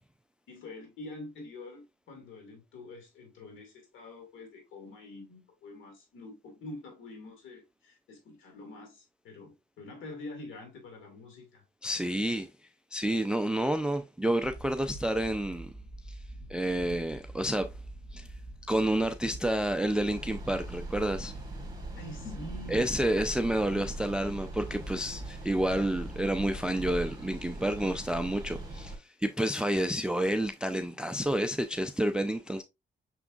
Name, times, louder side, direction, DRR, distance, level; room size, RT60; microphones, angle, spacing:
voice 1, 0.5-11.6 22.0-23.0, left 2 dB, 80° left, 2.0 m, -46 dB
voice 2, 11.8-12.5 12.9-15.7 16.1-16.2 16.5-17.7 18.1-18.3 18.7-21.3 22.7-32.6, right 1 dB, 5° right, 0.3 m, -29 dB
sound 1, 14.4-27.0, right 1 dB, 15° left, 1.9 m, -45 dB
sound 2, 20.0-29.0, right 2 dB, 20° right, 1.7 m, -42 dB
6.0 x 3.5 x 2.3 m
cardioid pair, 90°, 20 cm